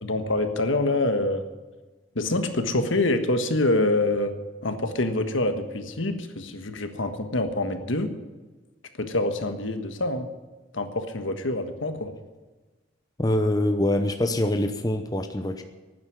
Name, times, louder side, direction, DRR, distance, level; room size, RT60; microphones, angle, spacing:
voice 1, 0.0-1.4 2.1-4.3 4.6-8.1 9.0-10.3 10.7-12.1, left 2 dB, 75° left, 7 dB, 1.5 m, -26 dB
voice 2, 13.2-15.6, left 1 dB, 20° left, 7 dB, 0.8 m, -24 dB
12.0 x 9.6 x 9.9 m, 1.2 s
head